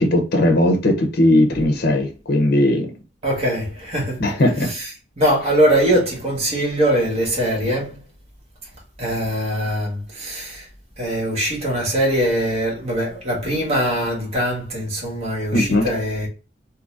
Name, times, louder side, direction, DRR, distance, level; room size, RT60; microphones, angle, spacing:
voice 1, 0.0-2.9 4.2-4.7 15.5-15.9, left 1 dB, 55° left, 0.7 m, -18 dB
voice 2, 3.2-4.2 4.6-4.9 5.2-8.0 9.0-10.7 11.0-16.3, equal, 35° right, 1.4 m, -22 dB
3.9 x 2.8 x 2.4 m
head